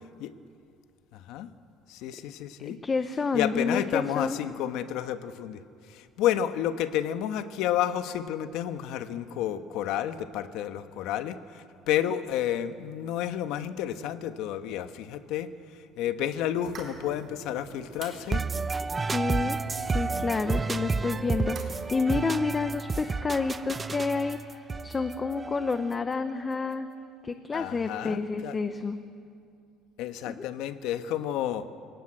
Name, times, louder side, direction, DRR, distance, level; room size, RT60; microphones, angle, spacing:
voice 1, 1.1-1.5 1.9-2.8 3.3-18.4 27.5-28.6 30.0-31.7, left 11 dB, 70° left, 9 dB, 1.3 m, -31 dB
voice 2, 2.6-4.4 19.0-26.9 27.2-29.0 30.3-30.4, left 4 dB, 20° left, 9 dB, 0.8 m, -29 dB
sound 1, 16.6-22.3, right 4 dB, 35° right, 4.1 m, -46 dB
sound 2, 18.3-26.1, right 4 dB, 15° right, 0.6 m, -31 dB
29.0 x 18.0 x 8.9 m, 2.4 s
cardioid pair, 160°, 0 cm